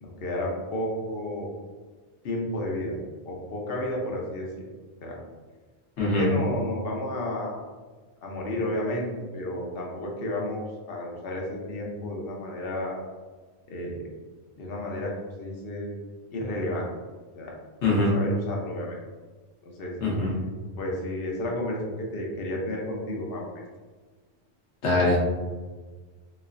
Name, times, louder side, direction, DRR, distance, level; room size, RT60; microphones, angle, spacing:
voice 1, 0.0-1.5 2.2-3.0 3.2-4.5 5.0-5.2 6.0-7.6 8.2-13.0 13.7-14.0 14.6-15.9 16.3-16.9 17.4-17.5 18.1-19.0 19.6-19.9 20.8-23.5, left 1 dB, 60° left, -1 dB, 0.9 m, -31 dB
voice 2, 6.0-6.3 17.8-18.1 20.0-20.3 24.8-25.3, left 2 dB, 80° left, -4 dB, 1.2 m, -23 dB
3.1 x 3.1 x 2.5 m, 1.4 s
omnidirectional pair, 1.1 m